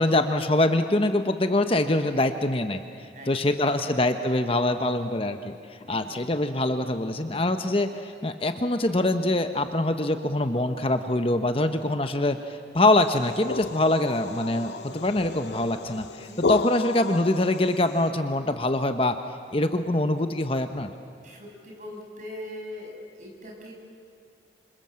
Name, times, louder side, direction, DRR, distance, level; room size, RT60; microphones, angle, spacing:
voice 1, 0.0-2.8 3.3-19.2 19.5-20.9, left 2 dB, 30° left, 8 dB, 0.9 m, -24 dB
voice 2, 3.1-3.9 5.9-6.2 16.2-16.6 21.2-23.7, left 1 dB, 45° right, 0 dB, 6.0 m, -42 dB
sound 1, 13.1-18.1, left 4 dB, 65° left, 0.6 m, -33 dB
27.0 x 26.5 x 7.6 m, 2.3 s
head